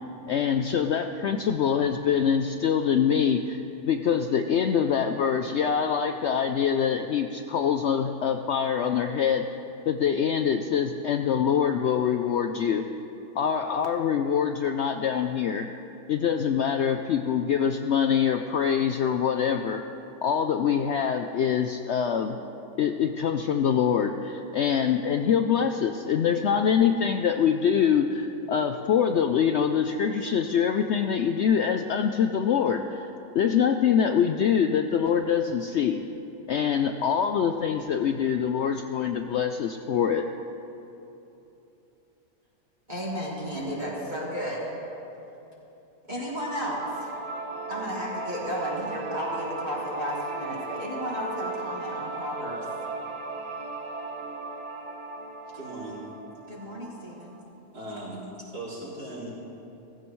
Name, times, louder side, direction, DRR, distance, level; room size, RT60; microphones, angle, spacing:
voice 1, 0.3-9.4 9.9-12.9 13.4-15.7 16.1-19.8 20.2-22.4 22.8-33.1 33.3-36.0 36.5-40.2, left 7 dB, 80° left, 6 dB, 0.6 m, -24 dB
voice 2, 42.9-44.9 46.1-47.1 47.7-52.7 56.5-57.4, equal, 30° right, -6 dB, 2.2 m, -33 dB
sound 1, 46.3-57.4, right 3 dB, 90° right, 1.7 m, -37 dB
voice 3, 55.5-56.0 57.7-59.3, right 1 dB, 75° right, -9 dB, 4.3 m, -38 dB
17.0 x 15.0 x 3.1 m, 3.0 s
omnidirectional pair, 1.7 m